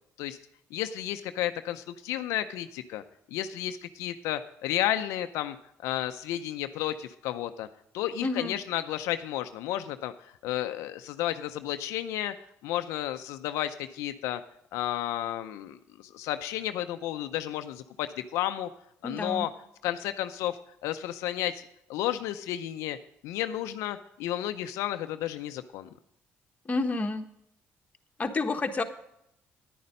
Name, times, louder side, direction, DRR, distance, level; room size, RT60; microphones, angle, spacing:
voice 1, 0.7-3.0 3.3-5.6 5.8-7.7 7.9-12.3 12.6-14.4 14.7-18.7 19.0-19.5 19.8-21.6 21.9-23.0 23.2-25.9, left 12 dB, 90° left, 9 dB, 0.5 m, -32 dB
voice 2, 8.2-8.5 19.0-19.5 26.6-27.2 28.2-28.8, left 3 dB, 30° left, 6 dB, 1.2 m, -29 dB
10.0 x 9.6 x 5.3 m, 0.78 s
cardioid pair, 85°, 5 cm